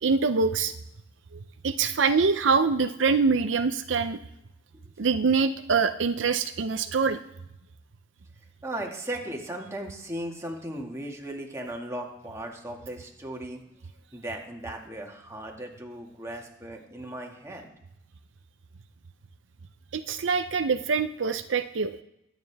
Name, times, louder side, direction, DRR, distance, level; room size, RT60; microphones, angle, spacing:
voice 1, 0.0-0.7 1.6-4.2 5.0-7.2 19.9-22.0, right 5 dB, 70° right, 8 dB, 0.6 m, -24 dB
voice 2, 8.6-13.6 14.1-17.7, right 1 dB, 15° right, 0 dB, 1.9 m, -37 dB
22.5 x 9.2 x 3.5 m, 0.83 s
head